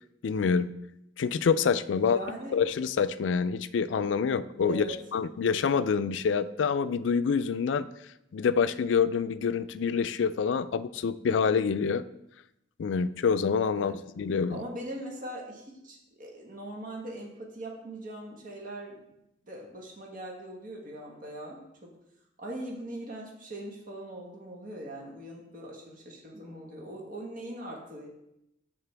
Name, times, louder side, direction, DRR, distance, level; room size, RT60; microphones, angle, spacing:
voice 1, 0.2-0.7 1.2-2.2 2.5-7.9 8.3-12.0 12.8-14.6, left 6 dB, 75° left, 14 dB, 0.4 m, -26 dB
voice 2, 2.0-2.6 4.7-4.9 13.7-14.0 14.5-19.0 19.4-21.9 22.4-28.1, right 1 dB, 45° right, -1 dB, 1.5 m, -41 dB
12.5 x 4.4 x 3.4 m, 0.83 s
head